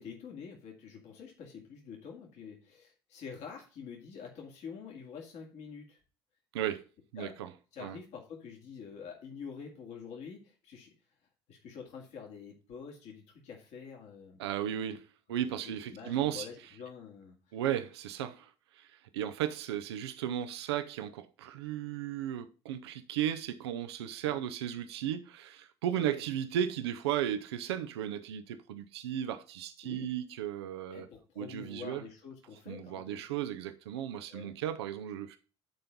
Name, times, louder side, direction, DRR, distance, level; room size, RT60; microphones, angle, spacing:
voice 1, 0.0-6.0 7.2-7.4 7.7-10.9 11.5-14.4 14.7-15.0 15.6-17.5 24.2-24.5 25.9-26.2 29.8-30.1 30.9-33.2 34.3-34.5, left 6 dB, 60° left, 2.3 m, -47 dB
voice 2, 6.5-6.8 7.1-7.5 7.8-8.0 14.4-16.5 17.5-31.1 31.4-32.0 32.7-35.4, right 10 dB, 75° right, 0.7 m, -35 dB
10.5 x 4.5 x 5.2 m
hypercardioid pair, 60°, 14 cm